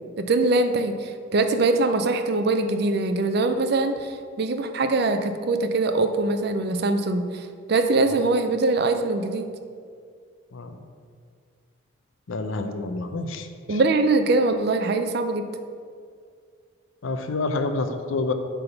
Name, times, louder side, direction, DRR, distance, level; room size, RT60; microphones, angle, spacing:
voice 1, 0.2-9.5 13.7-15.4, right 3 dB, 50° right, 8 dB, 0.4 m, -23 dB
voice 2, 12.3-13.8 17.0-18.3, left 3 dB, 75° left, 7 dB, 0.6 m, -28 dB
7.9 x 3.5 x 5.7 m, 2.2 s
head